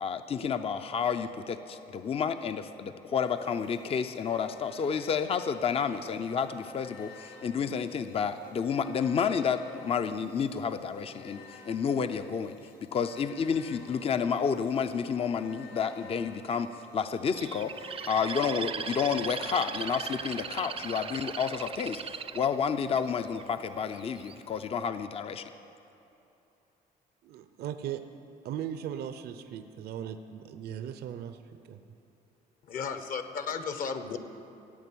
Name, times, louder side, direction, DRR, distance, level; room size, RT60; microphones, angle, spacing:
voice 1, 0.0-12.6 12.9-17.7 18.1-22.0 22.3-25.4, left 6 dB, 35° left, 9 dB, 0.6 m, -30 dB
sound 1, 3.2-21.7, left 4 dB, 70° left, 3.1 m, -54 dB
Bird, 17.4-23.4 24.0-24.4, right 6 dB, 35° right, 0.6 m, -38 dB
voice 2, 27.2-28.0 28.4-31.4 31.7-31.8, right 9 dB, 70° right, 9 dB, 0.7 m, -38 dB
voice 3, 32.6-34.2, left 5 dB, 55° left, 9 dB, 1.2 m, -34 dB
15.0 x 8.8 x 8.5 m, 2.9 s
cardioid pair, 110°, 17 cm